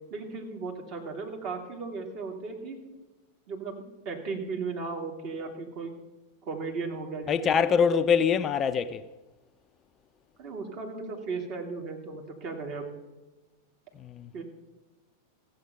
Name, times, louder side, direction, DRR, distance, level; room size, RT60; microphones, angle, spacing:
voice 1, 0.1-2.8 3.5-5.9 6.4-7.7 10.4-12.9 14.3-14.4, right 4 dB, 40° right, 2.3 m, -36 dB
voice 2, 7.3-9.0 14.0-14.3, left 6 dB, 25° left, 0.4 m, -24 dB
15.0 x 7.8 x 5.7 m
figure-of-eight pair, 90°, 0 cm